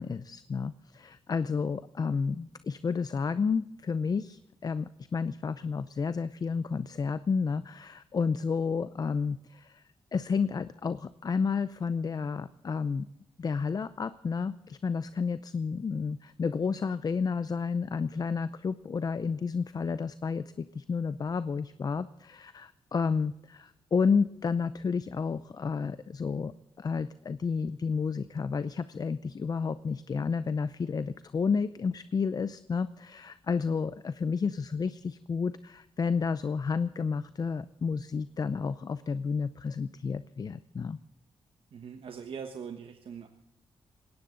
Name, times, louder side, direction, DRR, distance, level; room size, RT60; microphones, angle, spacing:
voice 1, 0.0-9.8 10.1-13.1 13.4-26.5 26.8-41.0, left 5 dB, 40° left, 14 dB, 0.6 m, -31 dB
voice 2, 41.7-43.3, right 6 dB, 65° right, 6 dB, 1.3 m, -41 dB
20.5 x 17.5 x 3.9 m, 0.84 s
cardioid pair, 110°, 10 cm